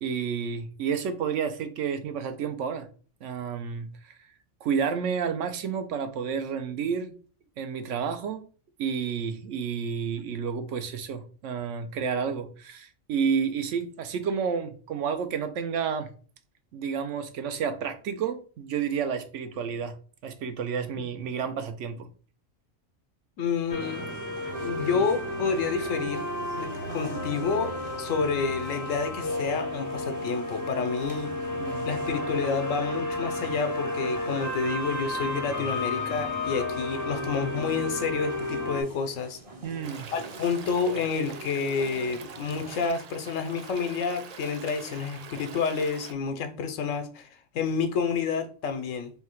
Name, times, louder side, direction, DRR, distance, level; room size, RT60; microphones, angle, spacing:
voice 1, 0.0-2.9 3.2-4.1 4.6-7.1 7.6-8.4 8.8-16.1 16.7-19.9 20.2-22.1 31.6-31.9 39.6-40.1, right 6 dB, 75° right, 1.0 m, -30 dB
voice 2, 23.4-24.0 24.6-26.2 26.5-31.5 31.8-39.4 40.1-47.3 47.5-49.1, left 5 dB, 85° left, 1.1 m, -29 dB
sound 1, 23.7-38.8, left 2 dB, 20° left, 0.5 m, -32 dB
sound 2, 23.8-42.9, right 3 dB, 35° right, 0.6 m, -44 dB
Stream, 39.8-46.1, right 6 dB, 90° right, 0.3 m, -44 dB
3.4 x 2.8 x 4.4 m
omnidirectional pair, 1.3 m